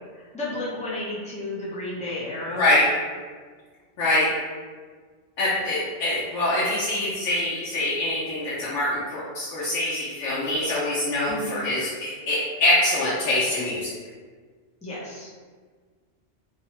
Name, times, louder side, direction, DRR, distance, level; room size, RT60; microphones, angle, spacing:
voice 1, 0.1-2.6 11.3-11.5 14.8-15.3, left 2 dB, 10° left, -8 dB, 0.4 m, -32 dB
voice 2, 2.5-2.9 4.0-4.3 5.4-13.9, left 1 dB, 90° left, -9 dB, 1.0 m, -24 dB
2.6 x 2.0 x 2.8 m, 1.5 s
omnidirectional pair, 1.2 m